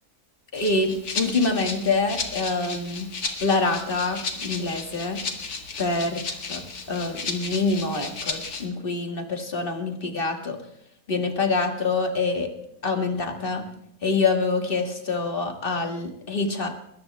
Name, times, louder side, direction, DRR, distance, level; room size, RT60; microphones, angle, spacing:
Rattle (instrument), 0.5-8.7, left 4 dB, 85° left, 2.4 m, -34 dB
voice 1, 0.5-3.1 3.4-5.2 5.8-6.2 6.5-6.6 6.9-10.6 11.1-12.5 12.8-13.6 14.0-16.7, left 3 dB, 35° left, 4 dB, 2.2 m, -26 dB
21.5 x 18.5 x 3.4 m, 0.76 s
omnidirectional pair, 1.6 m